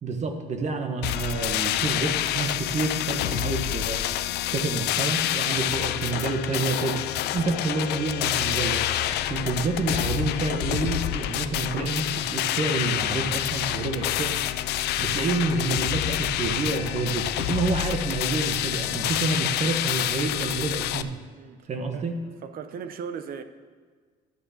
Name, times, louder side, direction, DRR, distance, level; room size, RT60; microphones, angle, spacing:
voice 1, 0.0-4.0 4.5-7.0 7.3-8.8 9.1-14.4 15.0-21.1 21.7-22.2, right 3 dB, 40° right, 5 dB, 1.4 m, -28 dB
sound 1, 1.0-21.0, left 13 dB, 75° left, 0.5 m, -27 dB
voice 2, 21.3-22.1 22.4-23.4, right 7 dB, 60° right, 10 dB, 0.9 m, -38 dB
11.5 x 6.4 x 7.3 m, 1.5 s
cardioid pair, 110°, 17 cm